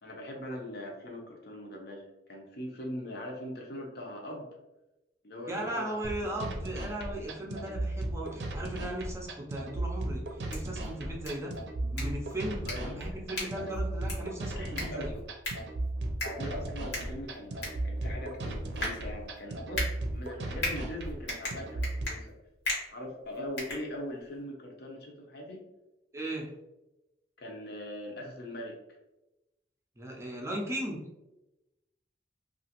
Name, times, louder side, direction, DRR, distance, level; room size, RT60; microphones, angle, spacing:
voice 1, 0.0-4.5 5.2-6.1 12.5-13.2 13.4-13.5 14.5-15.2 16.2-22.4 22.9-25.6 27.4-28.8, left 1 dB, 60° left, 0 dB, 0.7 m, -41 dB
voice 2, 5.5-11.6 11.8-15.2 26.1-26.5 30.0-31.0, right 1 dB, 15° right, -1 dB, 0.4 m, -37 dB
sound 1, 6.0-22.0, right 1 dB, 70° right, 0.5 m, -36 dB
sound 2, 10.3-24.4, left 2 dB, 85° left, 1.2 m, -40 dB
2.9 x 2.4 x 2.8 m, 0.98 s
head